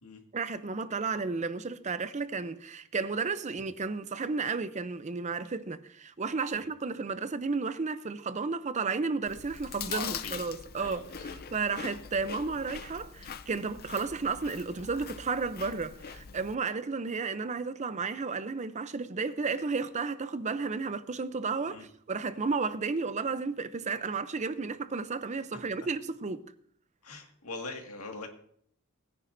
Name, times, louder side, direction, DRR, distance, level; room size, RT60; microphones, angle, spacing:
voice 1, 0.3-11.1 11.5-26.4, right 4 dB, 35° right, 0.6 m, -33 dB
Chewing mastication, 9.3-16.6, left 7 dB, 45° left, 0.5 m, -43 dB
voice 2, 9.8-10.4 10.8-11.4 21.7-21.8 25.5-25.6 27.0-28.3, left 3 dB, 90° left, 2.0 m, -41 dB
19.5 x 10.0 x 2.6 m
head